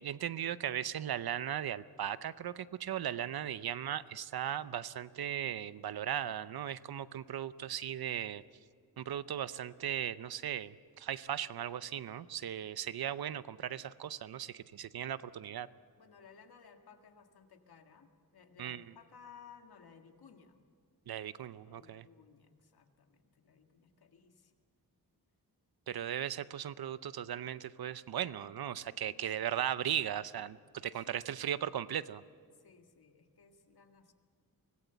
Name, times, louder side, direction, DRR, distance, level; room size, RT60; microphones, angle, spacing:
voice 1, 0.0-8.4 9.0-15.7 18.6-18.8 21.1-22.1 25.9-30.6 30.8-32.2, right 10 dB, 75° right, 15 dB, 0.7 m, -37 dB
voice 2, 16.0-18.1 18.3-20.6 21.6-24.5 28.8-29.3 30.8-31.2 32.6-34.1, left 6 dB, 85° left, 5 dB, 1.9 m, -59 dB
24.5 x 19.0 x 8.0 m, 2.1 s
wide cardioid pair, 155°, 37 cm